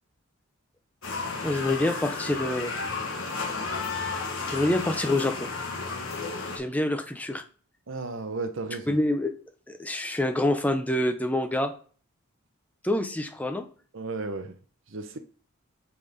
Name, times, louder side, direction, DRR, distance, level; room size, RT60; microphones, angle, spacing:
sound 1, 1.0-6.6, left 4 dB, 70° left, 1.4 m, -32 dB
voice 1, 1.4-2.7 4.5-5.5 6.5-7.4 8.9-9.3 9.7-11.7 12.8-13.7, left 1 dB, 5° left, 0.6 m, -26 dB
voice 2, 7.9-9.0 13.9-14.6 14.9-15.2, right 3 dB, 60° right, 0.7 m, -34 dB
5.6 x 5.1 x 4.0 m
head